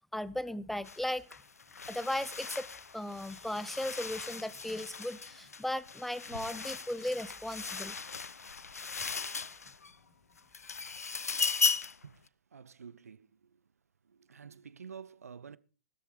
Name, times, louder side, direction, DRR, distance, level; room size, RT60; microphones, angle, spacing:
voice 1, 0.1-1.2 1.9-2.7 2.9-8.0, left 1 dB, ahead, 0.7 m, -36 dB
sound 1, 0.8-1.0 1.3-9.9 10.4-12.0, left 5 dB, 80° left, 0.7 m, -37 dB
voice 2, 12.0-13.6 14.0-15.6, right 6 dB, 75° right, 0.6 m, -50 dB
14.5 x 13.5 x 4.8 m
figure-of-eight pair, 105°, 8 cm